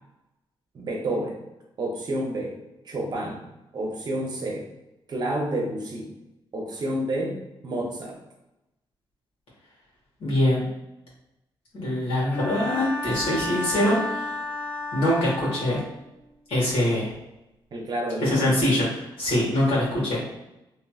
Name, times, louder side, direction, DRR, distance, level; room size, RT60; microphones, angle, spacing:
voice 1, 0.7-1.4 1.8-2.6 2.9-3.4 3.7-4.7 5.1-6.1 6.5-7.4 7.6-8.2 17.7-18.5, right 1 dB, 50° right, 0 dB, 0.7 m, -29 dB
voice 2, 10.2-10.7 11.7-14.2 14.9-15.8 16.5-17.1 18.2-18.9 19.2-20.2, left 1 dB, 85° left, -6 dB, 1.4 m, -23 dB
Bowed string instrument, 12.3-16.0, left 1 dB, 15° left, 0.7 m, -32 dB
2.9 x 2.9 x 2.3 m, 0.96 s
cardioid pair, 110°, 9 cm